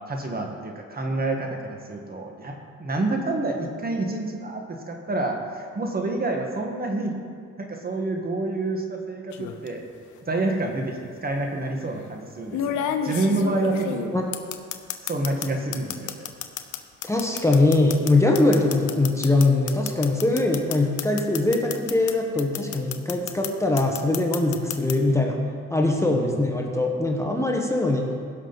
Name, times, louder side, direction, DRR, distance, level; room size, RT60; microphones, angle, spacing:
voice 1, 0.1-7.2 7.6-9.8 10.3-14.1 15.0-16.3 26.0-26.4, right 2 dB, 30° right, 2 dB, 1.5 m, -28 dB
sound 1, 9.3-9.7 10.9-11.0 12.5-15.5 15.7-22.1 22.4-23.5 23.8-24.9, left 9 dB, 75° left, 0.8 m, -30 dB
voice 2, 17.1-25.4 25.7-28.1, left 2 dB, 10° left, 0 dB, 1.2 m, -22 dB
16.5 x 6.3 x 4.0 m, 2.2 s
cardioid pair, 90°, 30 cm